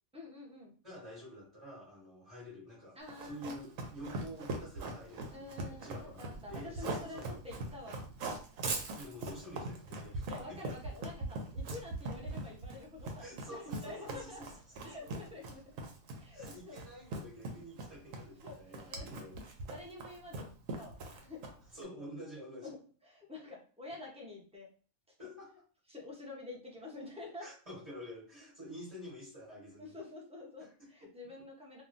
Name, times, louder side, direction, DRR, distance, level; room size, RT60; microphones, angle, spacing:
voice 1, 0.1-0.8 2.9-3.5 5.3-8.1 10.3-14.4 14.8-15.8 16.2-16.7 18.4-19.3 19.6-20.5 20.8-21.4 22.6-22.8 23.0-24.7 25.9-27.5 29.8-31.8, left 2 dB, 5° right, -3 dB, 0.5 m, -48 dB
voice 2, 0.8-7.4 8.8-10.6 13.2-14.5 14.8-15.1 16.3-19.4 21.7-22.7 25.2-25.6 27.4-29.9 30.6-31.3, equal, 25° right, -7 dB, 1.2 m, -49 dB
Run, 3.1-21.7, right 2 dB, 75° right, 1.0 m, -41 dB
3.0 x 2.3 x 2.5 m, 0.40 s
omnidirectional pair, 1.4 m